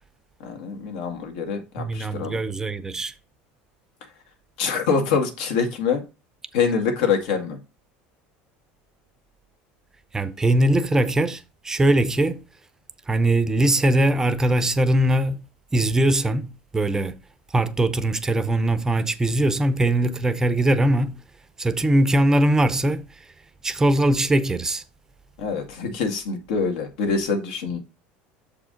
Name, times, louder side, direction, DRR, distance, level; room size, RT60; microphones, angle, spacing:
voice 1, 0.4-2.4 4.6-6.0 6.5-7.6 25.4-27.8, left 5 dB, 80° left, 1.8 m, -25 dB
voice 2, 1.8-3.1 10.1-12.4 13.1-15.5 15.7-17.2 17.5-21.2 21.6-23.0 23.6-24.8, right 1 dB, 10° right, 0.5 m, -21 dB
6.9 x 4.8 x 3.8 m
supercardioid pair, 140°, 5 cm